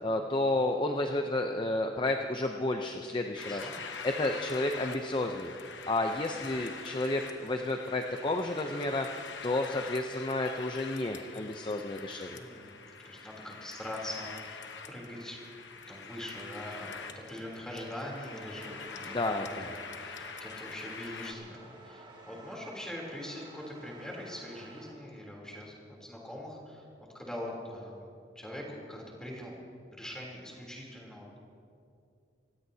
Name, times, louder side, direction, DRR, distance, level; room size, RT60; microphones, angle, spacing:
voice 1, 0.0-3.7 4.0-5.5 5.9-9.1 9.4-12.4 19.1-19.7, left 2 dB, 25° left, 4 dB, 0.6 m, -31 dB
sound 1, 3.4-21.3, left 5 dB, 75° left, 1.0 m, -44 dB
voice 2, 3.4-3.8 12.3-12.8 13.0-15.4 15.7-26.9 27.1-28.0 28.3-31.4, left 1 dB, 5° left, -3 dB, 3.2 m, -43 dB
sound 2, 18.0-24.9, right 1 dB, 30° right, 2.5 m, -52 dB
25.5 x 17.0 x 2.8 m, 2.5 s
head